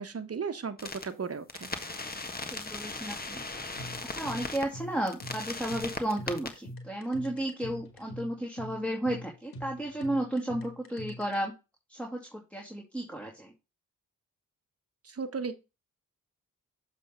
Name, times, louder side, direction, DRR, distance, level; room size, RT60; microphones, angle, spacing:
voice 1, 0.0-1.7 15.0-15.6, right 5 dB, 40° right, 1.2 m, -35 dB
sound 1, 0.8-1.0 1.5-4.6 5.1-6.5, left 3 dB, 25° left, 1.5 m, -38 dB
voice 2, 2.5-3.4 3.8-11.5 11.9-13.5, right 1 dB, 5° left, 2.4 m, -33 dB
sound 2, 3.8-11.4, equal, 75° left, 1.8 m, -44 dB
7.3 x 3.5 x 5.6 m
supercardioid pair, 45°, 37 cm